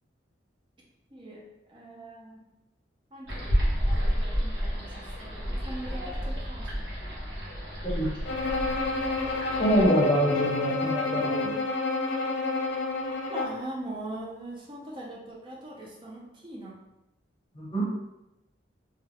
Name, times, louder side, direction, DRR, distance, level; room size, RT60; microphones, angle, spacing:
voice 1, 1.1-2.5 3.1-6.9 13.3-16.8, right 1 dB, 25° right, -3 dB, 0.5 m, -41 dB
sound 1, 3.3-9.9, equal, 60° right, 0.9 m, -30 dB
Bowed string instrument, 8.3-13.7, left 3 dB, 65° left, 0.5 m, -29 dB
voice 2, 9.5-11.5 17.5-17.8, equal, 25° left, -6 dB, 0.8 m, -25 dB
2.3 x 2.2 x 3.3 m, 0.92 s
head